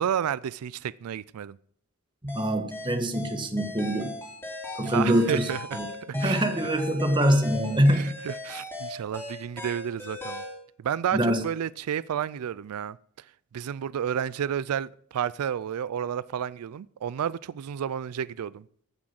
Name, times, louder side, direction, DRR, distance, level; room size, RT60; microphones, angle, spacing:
voice 1, 0.0-1.6 4.8-6.5 7.9-10.4 10.8-13.3 13.5-18.6, right 9 dB, 90° right, 20 dB, 0.4 m, -31 dB
voice 2, 2.2-4.1 4.7-5.5 5.7-5.9 6.1-8.2 11.1-11.4, equal, 20° right, 7 dB, 1.5 m, -24 dB
sound 1, 2.3-10.6, left 2 dB, 10° left, 3.3 m, -38 dB
14.5 x 6.3 x 7.5 m, 0.66 s
head